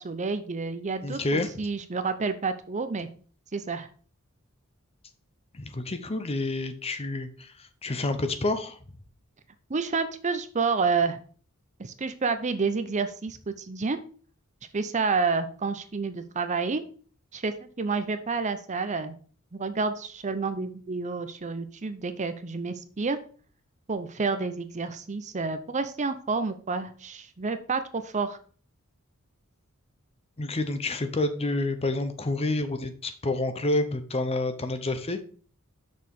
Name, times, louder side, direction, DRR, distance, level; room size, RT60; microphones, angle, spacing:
voice 1, 0.0-3.1 3.5-3.9 9.7-11.2 11.8-14.0 14.7-16.8 17.3-19.2 19.5-23.2 23.9-28.4, right 4 dB, 35° right, 10 dB, 0.6 m, -29 dB
voice 2, 1.0-1.5 5.5-8.8 30.4-35.2, left 2 dB, 30° left, 9 dB, 0.7 m, -29 dB
6.3 x 4.8 x 5.3 m, 0.43 s
head